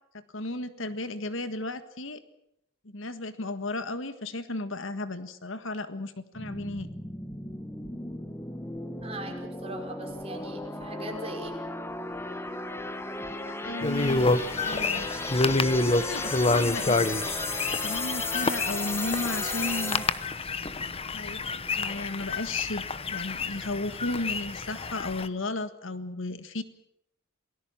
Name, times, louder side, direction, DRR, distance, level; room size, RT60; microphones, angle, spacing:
voice 1, 0.1-2.2 2.8-6.9 13.4-14.3 14.6-15.1 15.8-17.0 17.8-20.0 21.1-21.4 21.7-26.6, left 2 dB, 70° left, 11 dB, 1.6 m, -34 dB
sound 1, 6.3-20.4, left 2 dB, 10° left, 1.5 m, -35 dB
voice 2, 9.0-11.6, right 2 dB, 30° right, 2 dB, 5.4 m, -40 dB
sound 2, 13.8-25.3, left 3 dB, 30° left, 1.0 m, -28 dB
28.0 x 19.0 x 7.3 m, 0.76 s
head